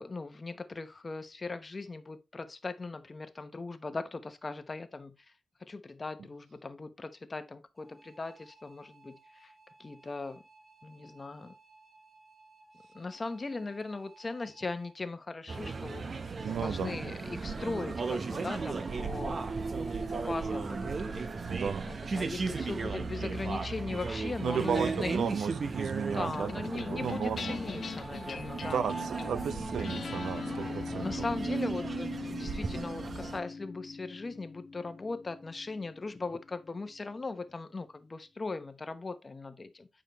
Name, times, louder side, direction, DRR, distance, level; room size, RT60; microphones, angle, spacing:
voice 1, 0.0-5.2 5.6-9.5 9.8-10.4 10.8-11.5 12.9-16.1 16.4-21.2 21.9-25.2 26.1-28.8 31.0-39.9, left 3 dB, 30° left, 0.9 m, -39 dB
sound 1, 7.8-14.9, right 3 dB, 20° right, 3.6 m, -59 dB
sound 2, 15.5-33.4, right 4 dB, 45° right, 0.9 m, -36 dB
voice 2, 16.4-16.9 21.5-21.9 24.4-27.6 28.6-31.1, right 7 dB, 80° right, 0.4 m, -34 dB
sound 3, 26.3-36.9, left 5 dB, 60° left, 0.9 m, -41 dB
9.0 x 4.9 x 3.0 m
cardioid pair, 90°, 0 cm